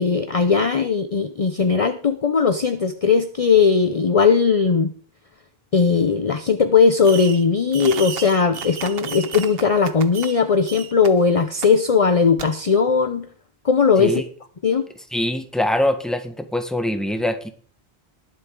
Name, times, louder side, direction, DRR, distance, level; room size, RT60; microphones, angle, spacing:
voice 1, 0.0-4.9 5.7-13.3 13.6-14.2 14.6-14.8, left 5 dB, 40° left, 8 dB, 0.7 m, -18 dB
Fireworks, 7.0-7.5 7.7-10.4 10.7-11.1 11.6-11.7 12.4-12.5, right 7 dB, 70° right, 1.0 m, -33 dB
voice 2, 15.1-17.5, left 1 dB, ahead, 7 dB, 1.3 m, -23 dB
20.5 x 7.6 x 3.8 m, 0.42 s
omnidirectional pair, 1.0 m